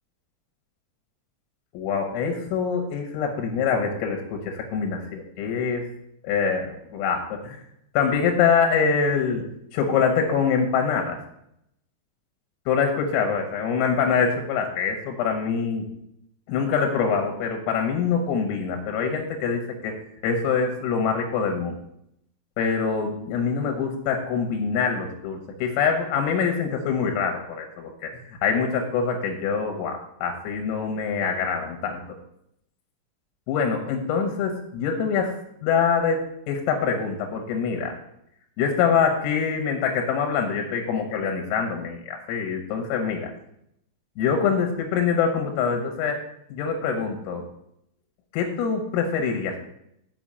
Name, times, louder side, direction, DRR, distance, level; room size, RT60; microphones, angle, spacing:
voice 1, 1.7-5.9 6.2-7.6 8.0-9.5 9.7-11.2 12.7-15.9 16.5-19.9 20.2-21.8 22.6-28.1 28.4-32.0 33.5-37.9 38.6-43.3 44.2-46.2 46.5-47.4 48.3-49.6, left 6 dB, 90° left, 3 dB, 3.7 m, -24 dB
7.0 x 5.8 x 7.5 m, 0.76 s
omnidirectional pair, 5.8 m